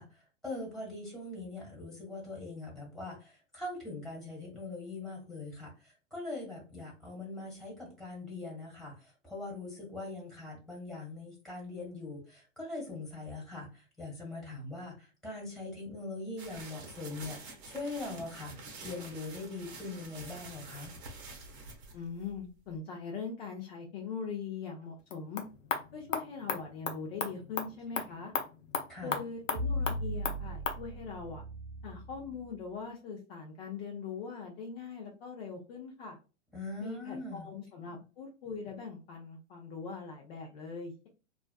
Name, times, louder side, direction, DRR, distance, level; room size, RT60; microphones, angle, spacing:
voice 1, 0.0-18.6 18.8-20.9 28.9-29.2 36.5-37.5, left 2 dB, ahead, -3 dB, 1.4 m, -42 dB
sound 1, 16.4-22.7, right 3 dB, 35° right, 0.8 m, -48 dB
voice 2, 21.9-25.4 25.9-28.3 29.0-31.4 31.8-36.2 36.8-41.1, left 5 dB, 50° left, 0 dB, 0.7 m, -41 dB
sound 2, 25.0-30.8, left 6 dB, 85° left, 0.7 m, -37 dB
sound 3, 29.5-32.6, left 1 dB, 60° right, 0.5 m, -37 dB
2.4 x 2.3 x 2.2 m, 0.32 s
hypercardioid pair, 120°, 38 cm